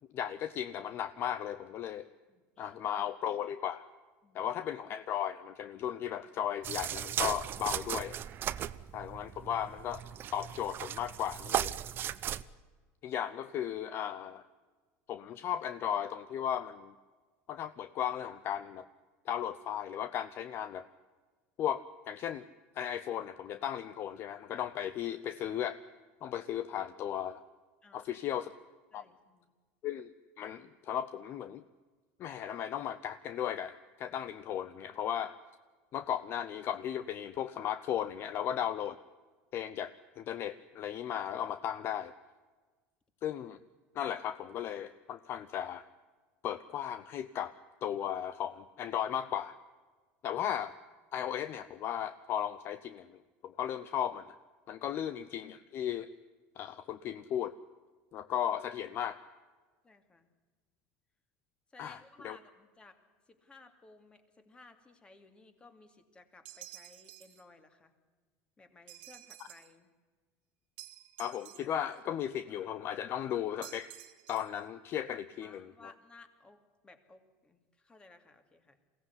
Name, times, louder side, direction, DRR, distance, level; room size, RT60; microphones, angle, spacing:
voice 1, 0.1-2.1 2.6-3.8 4.3-8.2 8.9-10.0 10.3-11.7 13.0-14.4 15.1-16.9 17.5-18.8 19.3-20.9 21.6-22.4 22.8-25.8 26.2-27.4 27.9-28.5 28.9-29.0 29.8-30.1 30.4-31.6 32.2-35.4 35.9-39.0 39.5-42.1 43.2-43.6 43.9-45.8 46.4-47.5 47.8-49.6 50.2-50.7 51.1-54.3 54.7-56.1 56.6-57.5 58.1-59.2 61.8-62.4 71.2-73.9 74.3-75.7, left 10 dB, 45° left, 13 dB, 0.7 m, -36 dB
voice 2, 2.3-2.8 4.2-4.5 8.5-9.0 27.8-28.2 28.9-29.5 54.7-54.9 59.8-60.3 61.7-63.0 63.3-67.9 68.6-69.9 75.4-78.8, left 3 dB, 15° left, 8 dB, 2.6 m, -58 dB
sound 1, 6.6-12.4, right 11 dB, 40° right, 0.8 m, -37 dB
sound 2, 66.5-67.4 68.9-69.8 70.8-72.0 73.6-74.6, right 15 dB, 85° right, 1.6 m, -51 dB
22.5 x 17.0 x 9.7 m, 1.4 s
supercardioid pair, 130°, 6 cm